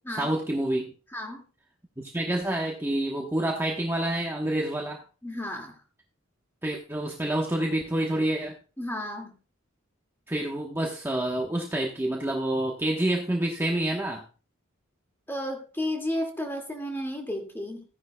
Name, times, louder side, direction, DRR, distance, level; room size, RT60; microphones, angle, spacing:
voice 1, 0.1-0.9 2.0-5.0 6.6-8.6 10.3-14.2, right 1 dB, 10° right, -1 dB, 1.1 m, -28 dB
voice 2, 1.1-1.4 5.2-5.8 8.8-9.4 15.3-17.8, left 1 dB, 10° left, 3 dB, 2.1 m, -33 dB
15.5 x 10.0 x 2.3 m, 0.35 s
head